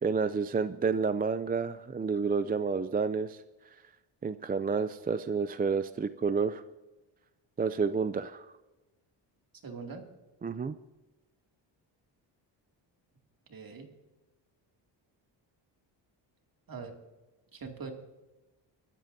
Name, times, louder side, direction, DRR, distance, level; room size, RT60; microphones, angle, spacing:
voice 1, 0.0-3.4 4.2-6.6 7.6-8.5 10.4-10.8, right 5 dB, 20° right, 12 dB, 0.4 m, -30 dB
voice 2, 9.6-10.0 13.5-13.9 16.7-16.9 17.5-17.9, right 5 dB, 50° right, 3 dB, 2.5 m, -42 dB
23.0 x 13.0 x 2.7 m, 1.1 s
cardioid pair, 85°, 46 cm